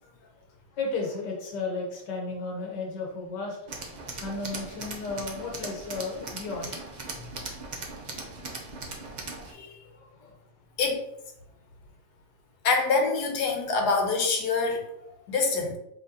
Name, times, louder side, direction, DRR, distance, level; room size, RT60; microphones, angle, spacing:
voice 1, 0.7-3.7 4.2-6.8 9.6-10.3, left 3 dB, 85° left, -1 dB, 1.6 m, -34 dB
Tools, 3.7-9.5, right 3 dB, 65° right, 0.4 m, -39 dB
voice 2, 12.6-14.8 15.3-15.8, left 4 dB, 70° left, 2 dB, 1.3 m, -25 dB
5.6 x 2.8 x 2.8 m, 0.80 s
omnidirectional pair, 1.8 m